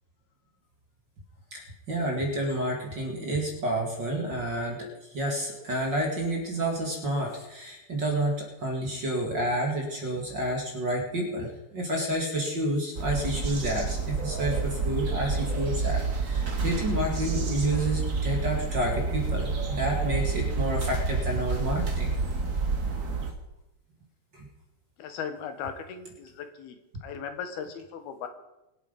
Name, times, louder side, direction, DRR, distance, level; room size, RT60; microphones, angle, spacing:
voice 1, 1.5-22.1 24.3-24.4, right 1 dB, 35° right, 0 dB, 2.5 m, -30 dB
sound 1, 12.9-23.3, right 4 dB, 85° right, 0.7 m, -29 dB
voice 2, 25.0-26.8 27.0-28.3, left 7 dB, 85° left, 7 dB, 3.4 m, -37 dB
24.5 x 8.2 x 5.3 m, 0.95 s
omnidirectional pair, 4.3 m